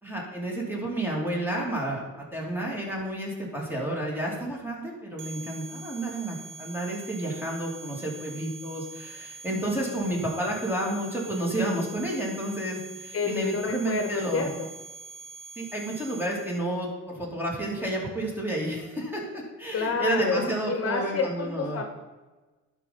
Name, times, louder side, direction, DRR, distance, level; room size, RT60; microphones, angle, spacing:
voice 1, 0.0-2.0 2.3-14.5 15.6-21.8, right 1 dB, 5° right, -2 dB, 3.0 m, -31 dB
sound 1, 5.2-16.6, right 5 dB, 80° right, 1.2 m, -44 dB
voice 2, 13.1-14.7 19.7-21.8, left 4 dB, 50° left, 5 dB, 1.2 m, -29 dB
12.0 x 5.5 x 4.3 m, 1.2 s
cardioid pair, 90°, 30 cm